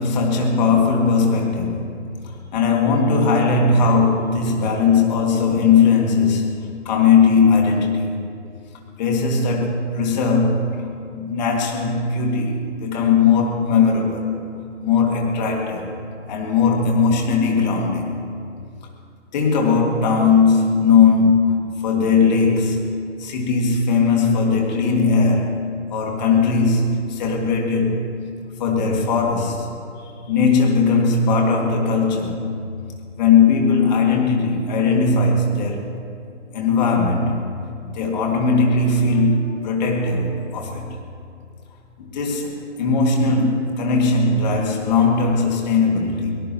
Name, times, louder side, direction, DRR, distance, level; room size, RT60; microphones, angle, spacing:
voice 1, 0.0-6.5 6.8-8.1 9.0-10.8 11.1-14.3 14.8-15.9 16.3-18.2 19.3-22.8 23.2-25.6 25.9-28.1 28.6-29.7 30.3-32.4 33.2-35.9 36.5-37.5 37.9-40.9 42.0-46.3, left 4 dB, 35° left, 1 dB, 2.4 m, -18 dB
23.0 x 18.0 x 3.1 m, 2.3 s
figure-of-eight pair, 130°, 37 cm